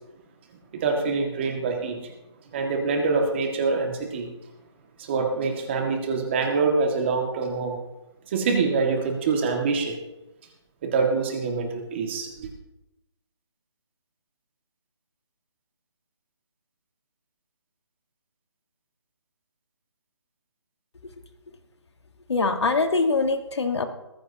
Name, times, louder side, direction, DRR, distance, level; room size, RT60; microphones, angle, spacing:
voice 1, 0.8-2.1 2.5-4.3 5.0-7.8 8.3-9.9 10.8-12.5, right 4 dB, 25° right, 2 dB, 1.9 m, -25 dB
voice 2, 22.3-23.9, left 3 dB, 65° left, 7 dB, 1.6 m, -23 dB
19.0 x 15.0 x 2.9 m, 0.99 s
hypercardioid pair, 165°, 15 cm